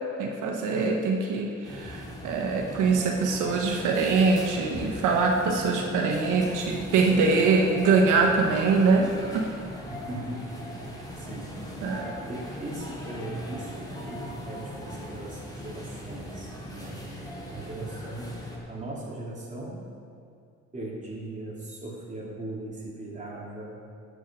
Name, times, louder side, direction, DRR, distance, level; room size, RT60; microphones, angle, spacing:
voice 1, 0.2-9.5 11.8-12.2, right 4 dB, 85° right, 1 dB, 1.0 m, -23 dB
sound 1, 1.6-18.6, equal, 15° left, 2.7 m, -39 dB
voice 2, 9.9-10.6 11.2-11.6 12.3-17.0 17.5-19.9 20.7-23.7, right 1 dB, 25° right, -4 dB, 3.0 m, -38 dB
12.0 x 6.4 x 6.1 m, 2.4 s
cardioid pair, 90°, 30 cm